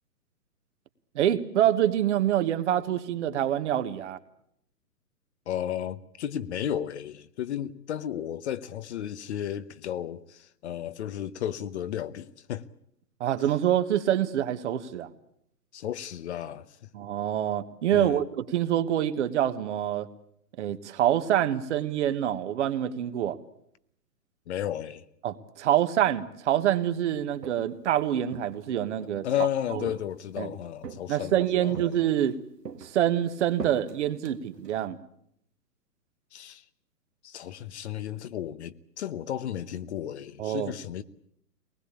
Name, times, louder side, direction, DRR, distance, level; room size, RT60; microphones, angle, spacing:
voice 1, 1.1-4.2 13.2-15.1 16.9-20.1 20.6-23.4 25.2-29.3 29.7-29.9 30.4-30.5 31.1-32.4 32.8-35.0 40.4-40.7, right 11 dB, 45° right, 1.6 m, -26 dB
voice 2, 5.5-12.7 15.7-16.7 17.9-18.2 24.5-25.1 29.2-31.8 36.3-36.6 37.2-41.0, left 10 dB, 45° left, 1.0 m, -33 dB
Walk footsteps, 27.2-27.8 28.3-29.3 29.9-30.4 30.8-31.4 31.7-32.3 32.6-34.9, right 5 dB, 90° right, 2.1 m, -42 dB
23.0 x 20.0 x 8.6 m
hypercardioid pair, 130°, 47 cm